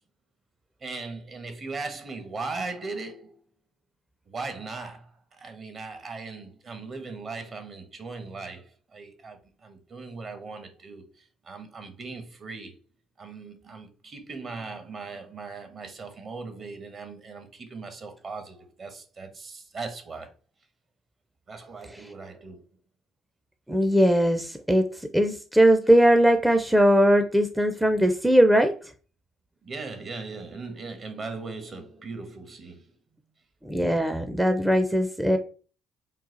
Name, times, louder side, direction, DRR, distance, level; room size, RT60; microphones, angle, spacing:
voice 1, 0.8-3.4 4.3-12.8 13.2-20.3 21.5-22.7 29.6-32.9, right 4 dB, 45° right, 1.1 m, -39 dB
voice 2, 23.7-24.9 25.1-28.7 33.6-35.4, equal, 5° right, 0.5 m, -20 dB
3.9 x 2.4 x 3.9 m
supercardioid pair, 70°, 0 cm